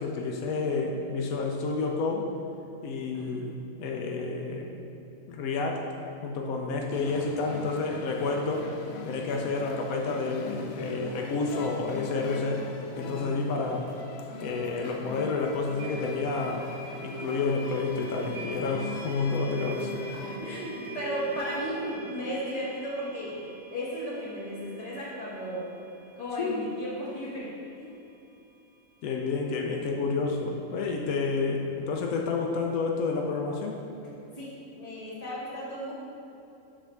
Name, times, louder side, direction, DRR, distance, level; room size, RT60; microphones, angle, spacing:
voice 1, 0.0-2.2 2.8-4.7 5.3-5.9 6.2-8.7 9.0-12.6 13.0-13.9 14.4-16.7 17.0-19.9 26.4-26.7 29.0-33.8, left 4 dB, 85° left, 1 dB, 1.1 m, -30 dB
voice 2, 3.1-3.5 12.9-13.2 20.2-23.4 23.7-25.6 26.2-27.9 34.3-35.9, equal, 25° left, -8 dB, 1.7 m, -35 dB
sound 1, 6.9-20.4, left 4 dB, 65° left, 0.7 m, -41 dB
sound 2, 14.8-14.9 15.8-26.8, equal, 75° right, 1.7 m, -43 dB
7.3 x 3.3 x 5.8 m, 2.9 s
omnidirectional pair, 1.4 m